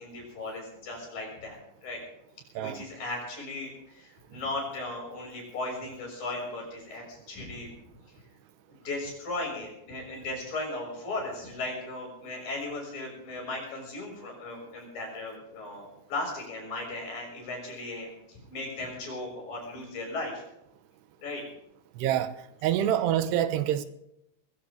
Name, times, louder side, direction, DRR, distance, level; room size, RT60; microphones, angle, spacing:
voice 1, 0.0-1.6 1.8-2.0 2.5-7.7 8.8-20.4 21.2-21.4, left 2 dB, 55° left, 8.0 m, -37 dB
voice 2, 22.0-22.3 22.6-23.9, right 11 dB, 85° right, 3.0 m, -26 dB
21.0 x 16.5 x 3.7 m
omnidirectional pair, 4.8 m